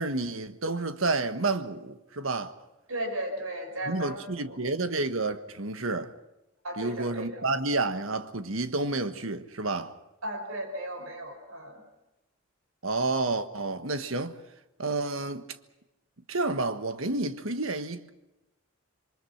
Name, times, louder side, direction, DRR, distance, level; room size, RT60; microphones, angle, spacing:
voice 1, 0.0-2.5 3.9-6.1 6.8-9.9 12.8-14.4 14.8-15.4 16.3-18.1, right 3 dB, 70° right, 1.5 m, -30 dB
voice 2, 2.9-4.6 6.6-7.4 10.2-11.8, right 1 dB, 90° right, 5.8 m, -35 dB
27.5 x 23.0 x 5.9 m
head